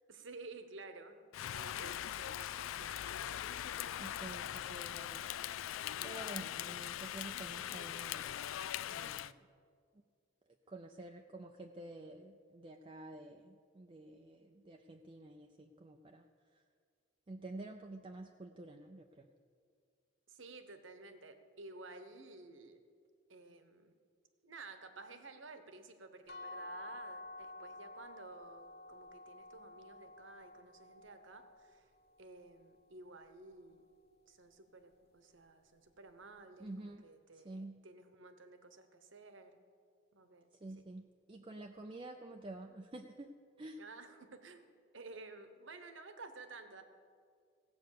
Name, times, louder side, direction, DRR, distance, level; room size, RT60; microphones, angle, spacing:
voice 1, 0.1-3.5 20.3-22.8 23.3-23.9 24.4-31.9 32.2-33.9 34.3-39.6 40.1-40.5 40.8-40.9 43.8-46.8, right 3 dB, 70° right, 8 dB, 1.1 m, -53 dB
Rain, 1.3-9.3, left 11 dB, 85° left, 0.3 m, -41 dB
voice 2, 4.0-5.3 6.0-8.3 8.8-9.4 10.7-16.3 16.5-16.6 17.3-19.3 36.6-37.0 37.3-37.8 40.6-43.3 43.6-43.8, right 2 dB, 25° right, 3 dB, 0.5 m, -49 dB
sound 1, 26.3-32.1, left 2 dB, 50° left, 1.0 m, -51 dB
16.5 x 8.0 x 6.6 m, 2.2 s
head